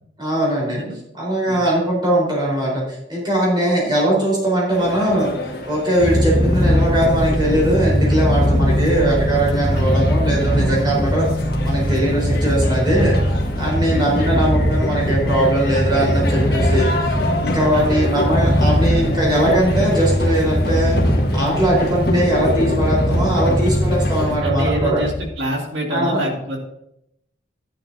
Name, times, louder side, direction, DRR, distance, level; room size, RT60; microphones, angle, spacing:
voice 1, 0.2-0.8 1.1-5.3 5.7-11.3 11.6-13.2 13.6-16.9 17.4-21.0 21.3-25.0 25.9-26.2, right 1 dB, 25° right, -3 dB, 4.1 m, -20 dB
sound 1, 4.7-24.4, left 1 dB, 50° left, 1.6 m, -27 dB
Purr, 6.0-25.3, equal, 10° left, 1.4 m, -20 dB
voice 2, 9.7-10.2 13.9-14.5 17.7-18.1 23.4-23.6 24.4-26.6, right 1 dB, 65° right, 1 dB, 2.2 m, -27 dB
12.0 x 10.0 x 2.7 m, 0.79 s
head